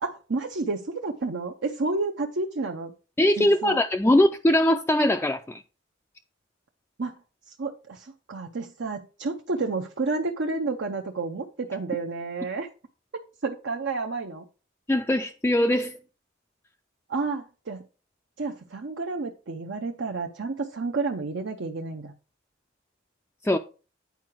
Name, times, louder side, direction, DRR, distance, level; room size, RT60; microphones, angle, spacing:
voice 1, 0.0-2.9 3.4-3.8 7.0-7.1 7.6-12.7 13.4-14.4 17.1-17.8 18.4-22.1, right 3 dB, 65° right, 0.7 m, -30 dB
voice 2, 3.2-5.6 14.9-16.0 23.4-23.6, left 1 dB, 10° left, 0.4 m, -21 dB
9.3 x 4.7 x 4.5 m
head